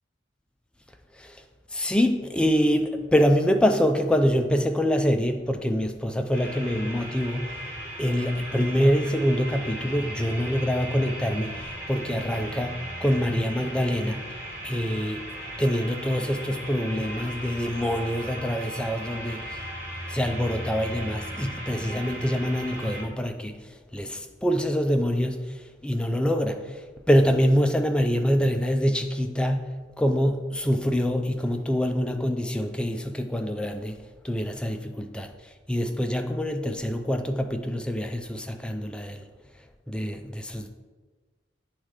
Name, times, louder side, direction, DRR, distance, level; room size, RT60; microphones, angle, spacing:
voice 1, 1.7-7.7 8.0-14.2 14.6-15.3 15.6-19.6 20.1-35.3 35.7-39.3 39.9-40.7, equal, 5° left, 0.4 m, -25 dB
sound 1, 6.3-23.0, right 1 dB, 35° right, 2.2 m, -37 dB
8.8 x 3.2 x 4.8 m
head